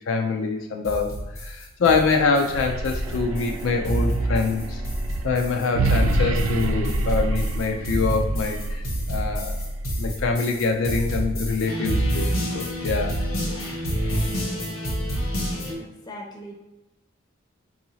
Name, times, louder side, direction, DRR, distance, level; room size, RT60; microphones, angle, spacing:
voice 1, 0.0-4.8 5.2-9.7 10.0-13.2, left 4 dB, 65° left, 3 dB, 0.4 m, -25 dB
sound 1, 0.9-15.7, right 1 dB, 90° left, 1.1 m, -28 dB
sound 2, 2.4-10.4, right 2 dB, 85° right, 0.4 m, -28 dB
sound 3, 3.0-6.5, right 2 dB, 20° right, 1.0 m, -43 dB
voice 2, 15.6-16.5, equal, 20° left, 1 dB, 0.6 m, -41 dB
4.6 x 2.8 x 2.7 m, 1.0 s
head